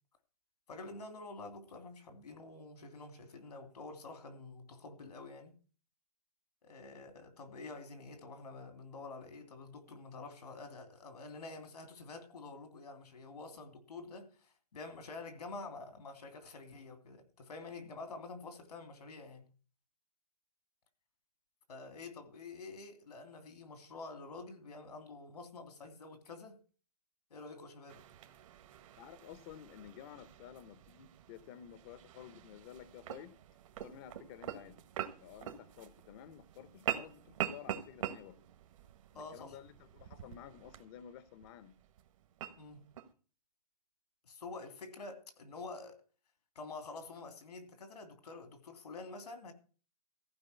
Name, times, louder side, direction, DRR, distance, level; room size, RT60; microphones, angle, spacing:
voice 1, 0.7-5.6 6.6-19.5 21.7-26.6 27.3-28.1 39.1-39.5 42.6-42.9 44.3-46.0 46.5-49.5, left 3 dB, 85° left, 3.0 m, -48 dB
sound 1, 27.9-43.1, right 11 dB, 55° right, 1.5 m, -45 dB
voice 2, 29.0-33.4 33.8-34.8 35.2-38.4 39.1-41.8, left 10 dB, 35° left, 0.8 m, -52 dB
14.5 x 5.1 x 7.9 m
hypercardioid pair, 145°, 20 cm